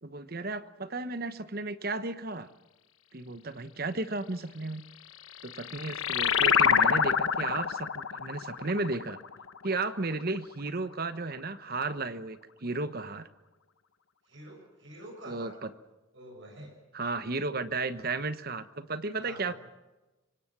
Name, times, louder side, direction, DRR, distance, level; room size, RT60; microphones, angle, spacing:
voice 1, 0.0-2.5 3.1-4.8 5.4-9.2 9.6-13.3 15.2-15.7 16.9-19.5, right 3 dB, 50° right, 12 dB, 1.1 m, -34 dB
sound 1, 5.1-10.2, left 7 dB, 90° left, 1.2 m, -27 dB
voice 2, 14.2-15.6 16.1-16.8 19.2-19.6, right 1 dB, 65° right, 1 dB, 7.0 m, -47 dB
26.0 x 25.0 x 6.1 m, 1.1 s
head